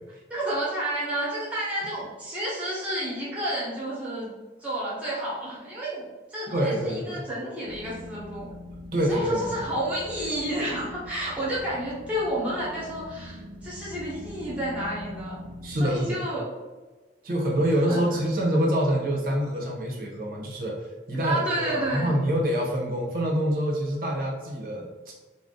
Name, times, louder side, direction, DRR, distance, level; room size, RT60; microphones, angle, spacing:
voice 1, 0.3-4.3 4.6-8.5 9.1-15.4 15.8-16.5 17.9-18.1 21.2-22.2, right 1 dB, 10° right, -7 dB, 0.9 m, -30 dB
voice 2, 6.5-7.2 8.9-9.6 15.6-16.2 17.2-21.4 21.7-25.1, equal, 55° right, -2 dB, 0.7 m, -26 dB
sound 1, 7.6-16.0, left 1 dB, 90° right, 0.4 m, -43 dB
2.5 x 2.1 x 3.6 m, 1.3 s
head